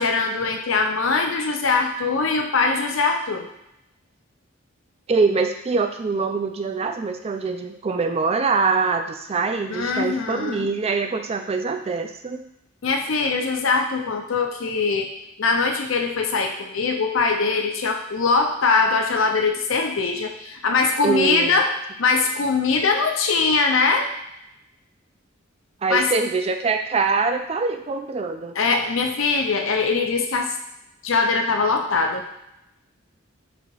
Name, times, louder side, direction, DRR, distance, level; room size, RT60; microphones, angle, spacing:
voice 1, 0.0-3.5 9.7-10.7 12.8-15.1 15.4-24.1 25.9-26.1 28.6-30.5 31.0-32.3, left 4 dB, 70° left, 4 dB, 0.6 m, -22 dB
voice 2, 5.1-12.4 21.0-21.6 25.8-28.6, right 4 dB, 30° right, 5 dB, 0.4 m, -24 dB
4.0 x 2.9 x 4.6 m, 0.83 s
head